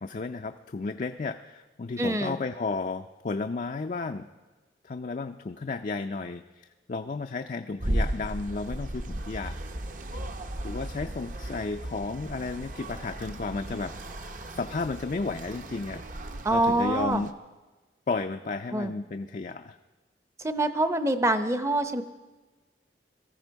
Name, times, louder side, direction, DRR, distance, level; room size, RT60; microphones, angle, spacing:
voice 1, 0.0-4.3 4.8-9.5 10.6-13.9 14.5-17.3 18.1-19.8, left 3 dB, 45° left, 6 dB, 0.4 m, -33 dB
voice 2, 2.0-2.4 16.4-17.2 18.7-18.9 20.4-22.0, right 1 dB, 15° right, 10 dB, 0.7 m, -25 dB
sound 1, 7.8-17.3, right 1 dB, 45° right, 0.8 m, -36 dB
21.0 x 14.0 x 4.6 m, 1.2 s
head